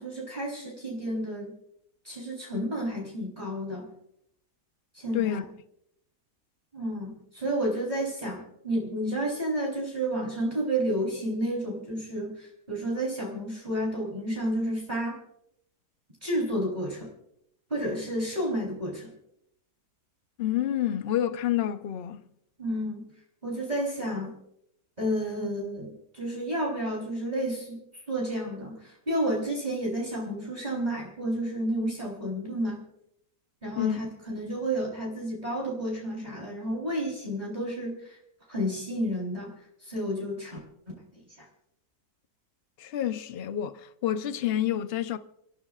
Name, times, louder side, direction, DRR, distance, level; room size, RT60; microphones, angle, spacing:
voice 1, 0.0-1.5 2.0-3.9 4.9-5.5 6.7-15.2 16.2-17.1 17.7-19.1 22.6-23.1 23.4-24.3 25.0-27.8 28.1-32.8 33.6-38.2 38.5-39.5 39.8-40.6, right 1 dB, 25° right, 3.9 m, -31 dB
voice 2, 20.4-22.2 33.8-34.0 42.8-45.2, left 11 dB, 50° left, 0.7 m, -28 dB
29.0 x 15.5 x 2.4 m
omnidirectional pair, 1.8 m